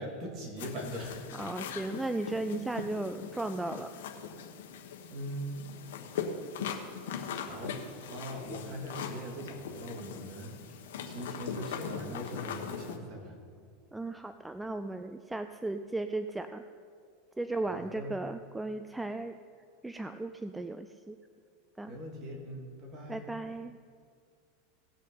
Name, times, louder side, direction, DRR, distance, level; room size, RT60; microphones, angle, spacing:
voice 1, 0.0-1.2 5.1-5.5 7.4-7.8 8.1-10.5 11.0-13.3 17.6-18.1 21.9-23.2, equal, 40° right, 0 dB, 2.8 m, -41 dB
sound 1, 0.6-13.0, left 7 dB, 80° left, 1.3 m, -40 dB
voice 2, 1.3-3.9 13.9-16.6 17.4-19.4 19.8-21.2 21.8-21.9 23.1-23.7, right 2 dB, 5° right, 9 dB, 0.4 m, -36 dB
18.0 x 6.5 x 5.6 m, 2.1 s
supercardioid pair, 140°, 0 cm